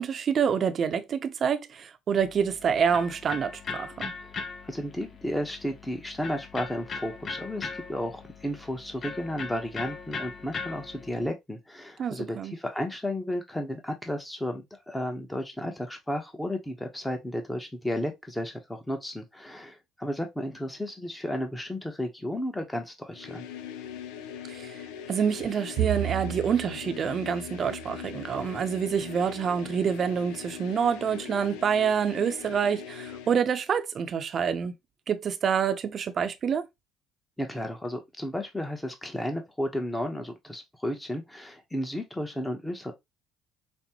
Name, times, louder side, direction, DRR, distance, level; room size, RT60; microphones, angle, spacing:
voice 1, 0.0-4.1 12.0-12.5 24.5-24.7 25.1-34.7 35.1-36.7, right 7 dB, 45° right, 0.7 m, -27 dB
Electric guitar, 2.2-11.3, left 5 dB, 40° left, 0.7 m, -39 dB
voice 2, 4.6-23.5 37.4-42.9, left 1 dB, 10° left, 0.9 m, -33 dB
sound 1, 23.1-33.5, left 8 dB, 90° left, 0.5 m, -41 dB
Bowed string instrument, 25.8-29.3, right 11 dB, 70° right, 0.9 m, -35 dB
5.2 x 2.1 x 2.9 m
supercardioid pair, 90°, 0 cm